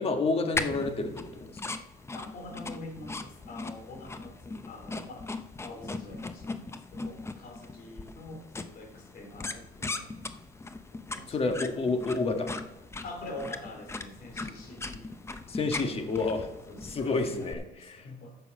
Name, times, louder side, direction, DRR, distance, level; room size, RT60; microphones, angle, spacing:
voice 1, 0.0-1.7 11.3-12.5 15.5-16.5 16.8-17.6 17.9-18.0, left 3 dB, 35° left, 5 dB, 1.4 m, -29 dB
sound 1, 0.5-17.5, left 3 dB, 15° left, 0.6 m, -39 dB
voice 2, 2.1-5.3 5.6-10.3 11.1-11.7 13.0-15.2 15.7-16.1 16.7-18.4, left 2 dB, 60° left, 4 dB, 2.6 m, -45 dB
10.0 x 6.9 x 5.0 m, 0.93 s
cardioid pair, 110°, 17 cm